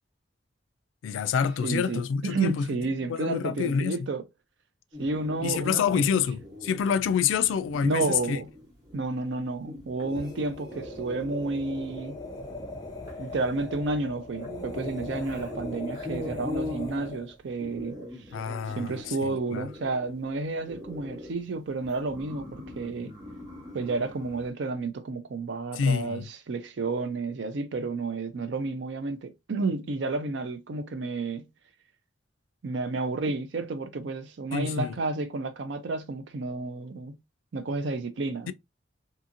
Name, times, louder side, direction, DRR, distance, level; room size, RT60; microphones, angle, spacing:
voice 1, 1.0-2.8 3.1-4.1 5.4-8.4 18.3-19.7 25.8-26.3 34.5-35.0, left 7 dB, 90° left, 0.3 m, -27 dB
voice 2, 1.6-4.2 5.0-6.1 7.8-8.5 8.9-12.2 13.2-18.0 18.8-23.2 23.7-31.5 32.6-37.1 37.5-38.5, right 3 dB, 70° right, 0.4 m, -31 dB
sound 1, 4.9-24.5, left 1 dB, 20° right, 1.7 m, -43 dB
sound 2, 10.0-17.4, left 2 dB, 20° left, 0.5 m, -40 dB
2.8 x 2.7 x 2.4 m
head